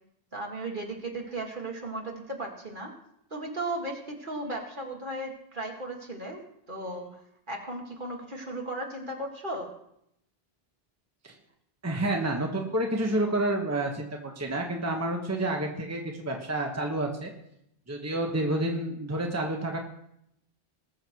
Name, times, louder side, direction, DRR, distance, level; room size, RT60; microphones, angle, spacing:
voice 1, 0.3-2.9 3.3-7.2 7.5-9.7, right 2 dB, 50° right, 1 dB, 2.2 m, -36 dB
voice 2, 11.8-17.3 17.9-19.8, right 1 dB, 15° right, 2 dB, 1.2 m, -29 dB
20.0 x 6.8 x 4.7 m, 0.75 s
omnidirectional pair, 1.1 m